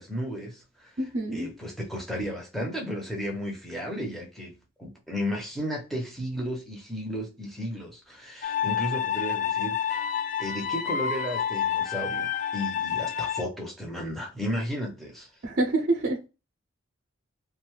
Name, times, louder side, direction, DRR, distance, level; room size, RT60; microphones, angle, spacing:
voice 1, 0.0-10.1 10.4-15.3, equal, ahead, 0.7 m, -34 dB
voice 2, 1.0-1.5 15.4-16.3, right 2 dB, 50° right, 0.5 m, -27 dB
sound 1, 8.4-13.4, left 8 dB, 35° left, 0.3 m, -29 dB
2.6 x 2.2 x 3.0 m
head